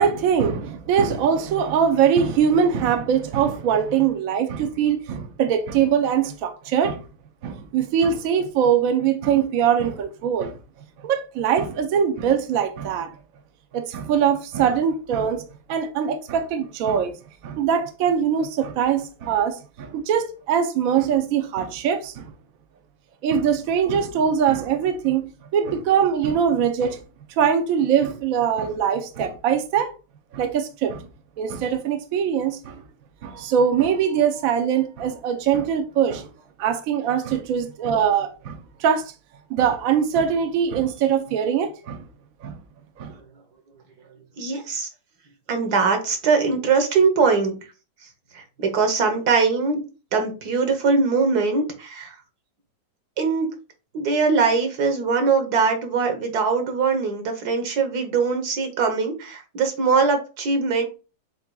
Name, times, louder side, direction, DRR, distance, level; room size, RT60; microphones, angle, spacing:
voice 1, 0.0-7.0 7.4-10.6 11.0-13.1 13.7-15.4 15.7-17.2 17.4-22.3 23.2-27.0 27.4-29.9 30.3-31.0 31.4-32.8 33.2-36.3 36.6-39.1 39.5-42.0 42.4-42.5 43.0-43.1, right 8 dB, 80° right, 0.7 m, -22 dB
voice 2, 44.4-44.9 45.5-47.6 48.3-49.8 50.1-52.2 53.2-53.5 53.9-60.8, right 4 dB, 60° right, 1.4 m, -21 dB
7.3 x 2.8 x 2.3 m
omnidirectional pair, 2.2 m